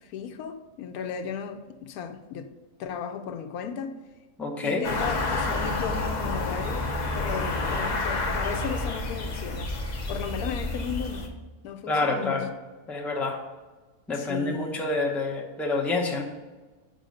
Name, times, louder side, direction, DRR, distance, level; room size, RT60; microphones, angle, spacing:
voice 1, 0.0-2.5 2.8-3.9 4.6-9.7 10.1-11.3 11.6-12.4 14.1-14.9, left 6 dB, 75° left, 1.1 m, -35 dB
voice 2, 4.4-4.8 11.9-12.5 12.9-13.4 14.1-16.2, left 3 dB, ahead, 0.6 m, -27 dB
sound 1, 4.8-11.3, left 2 dB, 35° left, 0.7 m, -29 dB
5.4 x 5.3 x 6.3 m
omnidirectional pair, 1.6 m